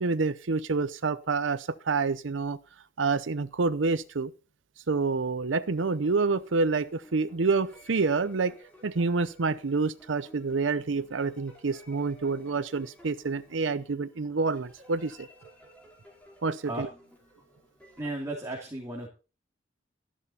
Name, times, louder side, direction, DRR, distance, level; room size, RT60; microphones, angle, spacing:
voice 1, 0.0-2.6 3.0-4.3 4.9-8.6 8.8-15.3 16.4-16.9, right 4 dB, 90° right, 13 dB, 0.7 m, -28 dB
sound 1, 5.4-18.2, equal, 10° left, 5.0 m, -55 dB
voice 2, 18.0-19.1, right 1 dB, 15° right, -1 dB, 2.9 m, -34 dB
13.5 x 11.0 x 4.2 m, 0.33 s
head